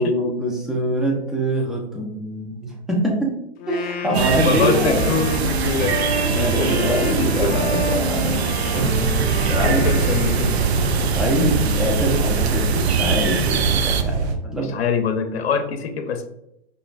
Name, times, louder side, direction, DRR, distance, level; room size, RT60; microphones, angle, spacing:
voice 1, 0.0-3.4 3.7-5.1 6.3-8.4 8.7-9.2 9.5-9.9 11.1-14.7, right 1 dB, ahead, -2 dB, 0.8 m, -24 dB
Wind instrument woodwind instrument, 3.6-11.3, left 4 dB, 30° left, 0.5 m, -30 dB
sound 1, 4.1-14.0, right 6 dB, 80° right, 0.5 m, -23 dB
voice 2, 4.3-6.0 6.3-7.6 9.6-10.8 14.7-16.3, left 5 dB, 75° left, 7 dB, 0.7 m, -24 dB
sound 2, 8.7-14.3, right 3 dB, 60° right, 0.8 m, -24 dB
4.9 x 2.6 x 2.5 m, 0.81 s
hypercardioid pair, 110°, 32 cm